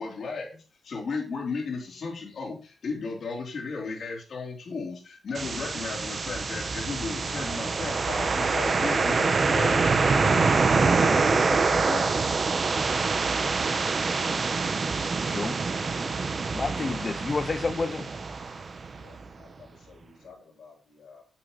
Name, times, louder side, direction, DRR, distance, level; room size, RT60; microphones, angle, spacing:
voice 1, 0.0-12.1, left 4 dB, 55° left, 3.6 m, -35 dB
sound 1, 5.4-19.2, right 4 dB, 40° right, 1.1 m, -25 dB
voice 2, 15.2-16.0 16.5-18.1, left 4 dB, 30° left, 0.5 m, -31 dB
voice 3, 18.9-21.2, left 5 dB, 80° left, 5.1 m, -53 dB
9.0 x 7.8 x 4.1 m
wide cardioid pair, 125°, 0 cm